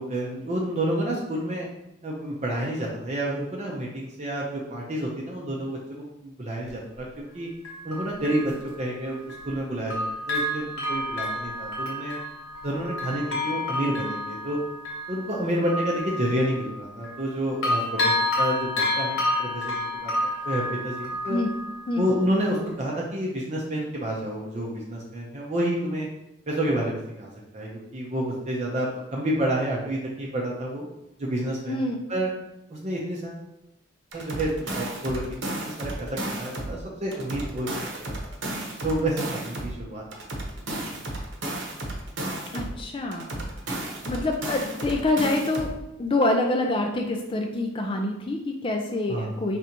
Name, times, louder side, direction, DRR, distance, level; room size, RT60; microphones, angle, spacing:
voice 1, 0.0-1.7 2.0-7.5 7.8-12.2 12.6-14.6 15.1-20.1 20.5-21.4 22.0-26.1 26.5-30.9 31.2-31.8 32.1-32.3 32.7-33.4 34.1-38.1 38.8-40.0 49.1-49.4, right 1 dB, 35° right, -3 dB, 0.6 m, -29 dB
Bell, 6.7-6.8 7.6-9.6 9.9-17.3 17.6-22.2 22.7-22.8, left 1 dB, 75° left, 1.1 m, -30 dB
voice 2, 31.7-32.0 42.5-43.4 43.8-45.7 46.0-49.6, left 2 dB, 25° left, 2 dB, 0.4 m, -26 dB
sound 1, 34.1-36.8 37.1-39.8 40.1-42.8 43.1-45.8, right 1 dB, 60° right, 0.9 m, -33 dB
5.1 x 3.4 x 2.9 m, 0.89 s
head